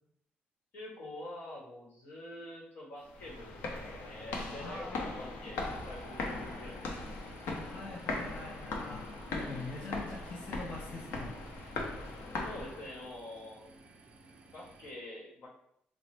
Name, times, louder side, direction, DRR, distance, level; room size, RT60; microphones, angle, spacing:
voice 1, 0.7-7.2 9.3-9.5 12.4-13.7 14.5-15.5, left 1 dB, 65° left, -3 dB, 1.1 m, -46 dB
sound 1, 3.1-13.1, left 2 dB, 85° left, 0.6 m, -39 dB
voice 2, 4.6-5.2 7.6-11.5, left 3 dB, 40° left, -2 dB, 0.4 m, -44 dB
sound 2, 5.5-14.9, right 2 dB, 30° right, 0.4 m, -58 dB
3.8 x 2.0 x 3.2 m, 0.73 s
cardioid pair, 150°, 4 cm